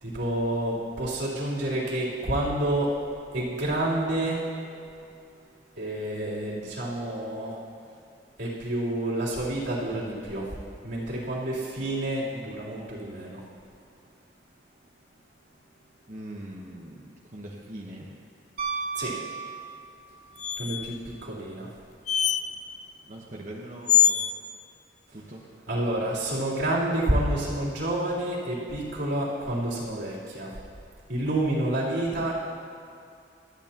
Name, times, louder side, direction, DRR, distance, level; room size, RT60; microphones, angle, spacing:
voice 1, 0.0-3.0 3.3-4.5 5.8-7.6 8.4-10.6 10.8-13.4 18.9-19.2 20.6-21.7 25.1-25.3 25.7-30.6 31.1-32.4, right 1 dB, 85° right, -7 dB, 3.6 m, -29 dB
voice 2, 16.1-18.1 23.1-24.2 25.1-25.4, right 1 dB, 40° right, -4 dB, 1.2 m, -41 dB
Piano, 18.6-20.2 22.5-22.6, right 5 dB, 55° right, 1.9 m, -33 dB
sound 1, 20.4-20.9 22.1-22.4 23.9-24.3, left 9 dB, 40° left, 0.4 m, -22 dB
26.5 x 9.0 x 3.0 m, 2.5 s
head